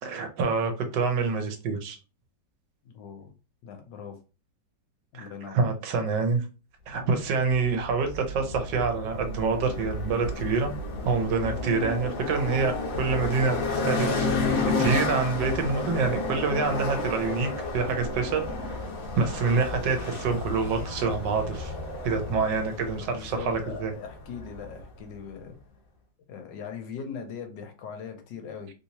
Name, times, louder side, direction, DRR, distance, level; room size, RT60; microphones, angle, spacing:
voice 1, 0.0-2.0 5.2-6.4 6.9-10.7 11.0-14.3 14.6-18.8 19.2-21.7 22.0-23.9, right 4 dB, 75° right, 1.3 m, -27 dB
voice 2, 2.8-3.3 3.6-4.2 5.1-5.6 6.9-7.2 23.0-25.6 26.3-28.7, left 6 dB, 80° left, 1.4 m, -40 dB
sound 1, 7.5-24.9, left 3 dB, 55° left, 1.2 m, -31 dB
3.3 x 2.7 x 2.8 m
omnidirectional pair, 2.0 m